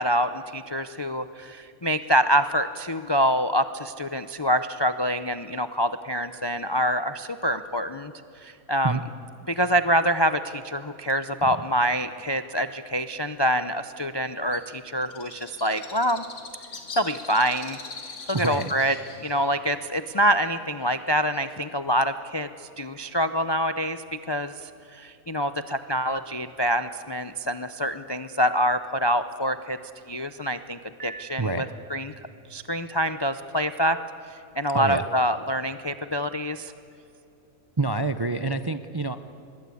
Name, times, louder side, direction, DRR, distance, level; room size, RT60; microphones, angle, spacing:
voice 1, 0.0-8.1 8.4-9.0 9.5-16.2 17.0-17.8 18.4-18.9 19.2-29.8 30.1-31.7 31.9-32.1 32.5-34.0 34.3-36.7, equal, 35° left, 10 dB, 0.4 m, -26 dB
Bird, 14.5-21.7, left 4 dB, 70° left, 2.5 m, -43 dB
voice 2, 18.3-18.7 31.4-31.6 34.7-35.1 37.8-39.2, right 3 dB, 30° right, 10 dB, 0.4 m, -27 dB
Piano, 31.0-32.3, right 3 dB, 50° right, 2.2 m, -45 dB
25.0 x 21.5 x 8.4 m, 2.8 s
omnidirectional pair, 1.5 m